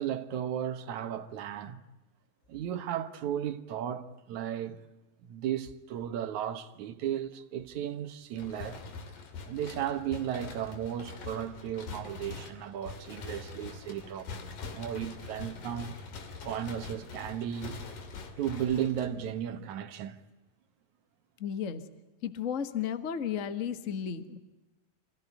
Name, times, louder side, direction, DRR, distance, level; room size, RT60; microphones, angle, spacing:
voice 1, 0.0-1.8 2.5-4.8 5.2-8.8 9.5-14.3 14.7-16.0 16.4-17.8 18.4-20.2, right 10 dB, 65° right, 2.4 m, -35 dB
sound 1, 8.4-19.6, left 4 dB, 70° left, 4.0 m, -44 dB
voice 2, 21.4-21.8 22.2-24.4, left 8 dB, 85° left, 0.6 m, -33 dB
27.0 x 17.0 x 9.4 m
omnidirectional pair, 4.0 m